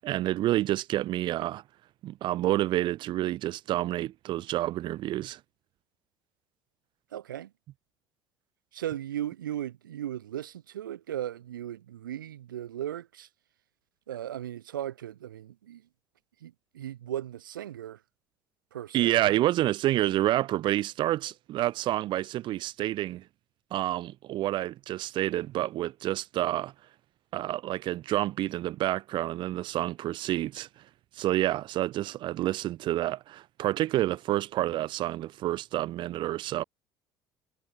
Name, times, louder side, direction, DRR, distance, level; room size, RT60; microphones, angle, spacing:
voice 1, 0.0-1.6 2.0-5.4 18.9-23.2 23.7-26.7 27.3-30.7 31.2-36.6, right 14 dB, 45° right, 0.4 m, -28 dB
voice 2, 7.1-7.5 8.7-13.3 14.1-15.8 16.4-18.0 18.7-19.4, right 11 dB, 75° right, 3.1 m, -37 dB
figure-of-eight pair, 55°, 11 cm